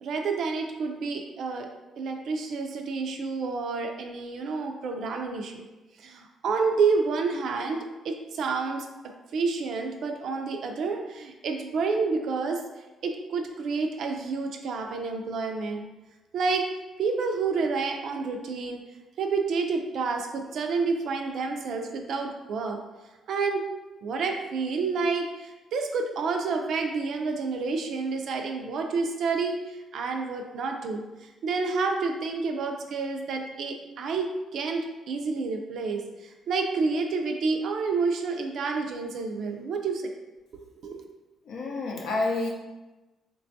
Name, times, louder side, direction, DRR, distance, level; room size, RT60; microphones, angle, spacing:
voice 1, 0.0-1.7 2.0-5.7 6.0-8.9 9.3-12.6 13.0-15.8 16.3-16.7 17.0-18.8 19.2-22.8 23.3-23.6 24.0-31.0 31.4-40.0 40.5-41.0, right 4 dB, 70° right, 3 dB, 0.3 m, -29 dB
voice 2, 41.4-42.5, left 2 dB, 75° left, -1 dB, 0.5 m, -28 dB
3.2 x 2.2 x 2.6 m, 1.1 s
cardioid pair, 90°, 0 cm